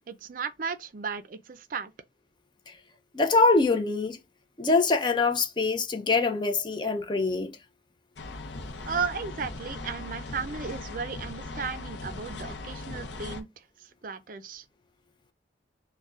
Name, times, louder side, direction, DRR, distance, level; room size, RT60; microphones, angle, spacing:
voice 1, 0.1-1.9 8.9-13.5 14.0-14.6, right 5 dB, 50° right, 0.4 m, -35 dB
voice 2, 3.1-4.2 4.6-7.5, left 3 dB, 25° left, 0.5 m, -24 dB
sound 1, 8.2-13.4, left 2 dB, 75° left, 0.6 m, -39 dB
6.3 x 2.2 x 2.4 m
head